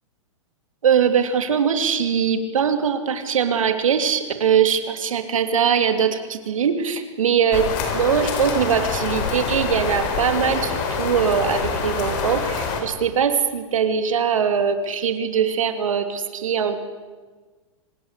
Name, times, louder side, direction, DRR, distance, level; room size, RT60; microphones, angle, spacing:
voice 1, 0.8-7.7 7.9-16.8, right 7 dB, 90° right, 7 dB, 3.0 m, -21 dB
sound 1, 7.5-12.8, left 5 dB, 35° left, 4.7 m, -26 dB
25.0 x 20.5 x 8.3 m, 1.4 s
hypercardioid pair, 165°, 16 cm